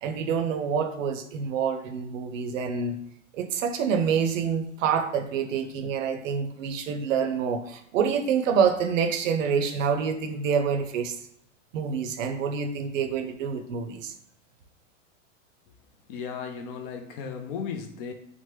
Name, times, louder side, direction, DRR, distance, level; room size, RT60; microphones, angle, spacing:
voice 1, 0.0-3.0 3.3-11.2 11.7-14.1, right 6 dB, 75° right, 8 dB, 0.5 m, -27 dB
voice 2, 16.1-18.1, left 6 dB, 45° left, 6 dB, 0.4 m, -35 dB
3.1 x 2.1 x 3.1 m, 0.73 s
hypercardioid pair, 125°, 39 cm